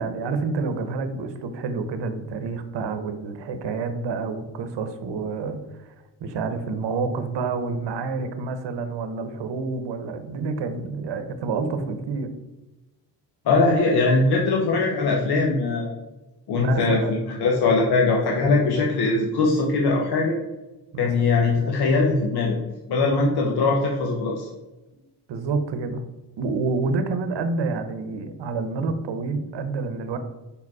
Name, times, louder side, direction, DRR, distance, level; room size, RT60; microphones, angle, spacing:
voice 1, 0.0-5.9 6.2-12.3 16.5-17.5 18.1-18.5 20.9-21.1 25.3-26.0 26.4-30.2, right 4 dB, 90° right, 9 dB, 0.8 m, -28 dB
voice 2, 13.4-15.9 16.5-20.4 21.0-22.6 22.9-24.5, left 3 dB, 65° left, 0 dB, 0.9 m, -21 dB
5.2 x 4.9 x 4.7 m, 1.1 s
wide cardioid pair, 170°, 41 cm